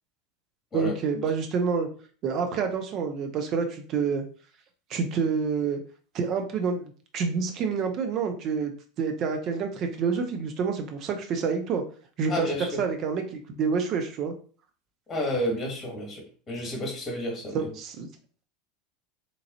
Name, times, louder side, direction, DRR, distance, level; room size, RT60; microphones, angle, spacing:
voice 1, 0.7-1.9 2.2-4.2 4.9-5.8 6.1-8.7 9.0-11.8 12.2-12.5 12.8-14.3 17.5-18.1, right 5 dB, 45° right, 0.7 m, -28 dB
voice 2, 12.3-12.8 15.1-17.7, left 1 dB, 25° left, 1.4 m, -31 dB
3.9 x 3.0 x 2.8 m
hypercardioid pair, 80°, 0 cm